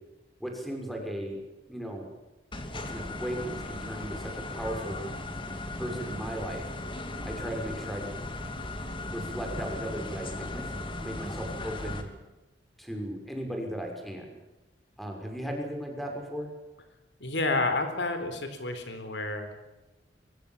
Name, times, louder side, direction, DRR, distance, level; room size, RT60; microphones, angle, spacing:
voice 1, 0.4-1.4 1.7-2.1 2.7-5.0 5.7-6.6 7.2-8.1 9.0-10.7 11.0-12.1 12.8-14.3 15.0-16.5, right 1 dB, ahead, 2 dB, 5.9 m, -36 dB
sound 1, 2.5-12.0, left 2 dB, 30° left, 2.8 m, -37 dB
voice 2, 17.2-19.7, left 2 dB, 75° left, 8 dB, 4.1 m, -30 dB
23.5 x 23.0 x 7.3 m, 1.1 s
head